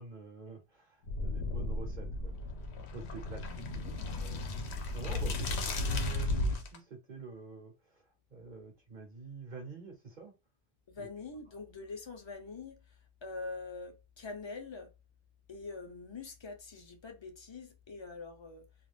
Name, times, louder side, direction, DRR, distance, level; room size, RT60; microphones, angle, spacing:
voice 1, 0.0-2.5 2.9-4.6 4.9-8.0 8.3-10.3 11.0-11.1, right 4 dB, 50° right, 0.8 m, -47 dB
sound 1, 1.1-6.8, left 2 dB, 85° left, 0.9 m, -35 dB
voice 2, 10.9-12.8 13.2-14.9 15.5-18.6, left 4 dB, 30° left, 0.6 m, -44 dB
2.4 x 2.4 x 3.2 m
omnidirectional pair, 1.1 m